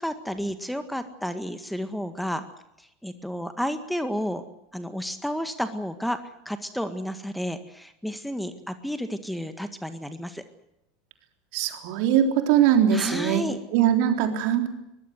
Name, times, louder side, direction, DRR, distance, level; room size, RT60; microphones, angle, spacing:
voice 1, 0.0-2.4 2.8-4.5 4.7-6.2 6.5-10.4 12.9-13.6, equal, ahead, 10 dB, 1.8 m, -31 dB
voice 2, 11.5-13.4 13.7-14.7, right 9 dB, 55° right, 5 dB, 3.6 m, -21 dB
22.5 x 21.5 x 8.0 m, 0.83 s
figure-of-eight pair, 75°, 0 cm